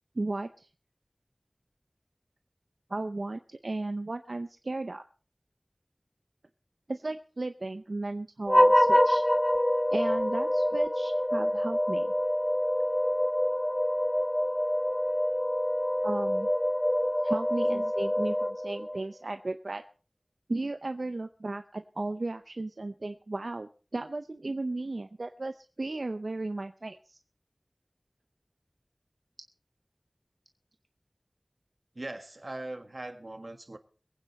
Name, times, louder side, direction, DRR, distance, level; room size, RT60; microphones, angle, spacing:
voice 1, 0.1-0.7 2.9-5.0 6.9-9.2 9.9-12.1 16.0-16.5 17.2-19.8 20.5-27.2, right 2 dB, 90° right, 8 dB, 0.6 m, -35 dB
sound 1, 8.5-19.0, equal, 20° left, 0.6 m, -26 dB
voice 2, 32.0-33.8, right 2 dB, 60° right, 8 dB, 1.6 m, -40 dB
22.0 x 9.2 x 4.3 m, 0.38 s
wide cardioid pair, 45°, 0 cm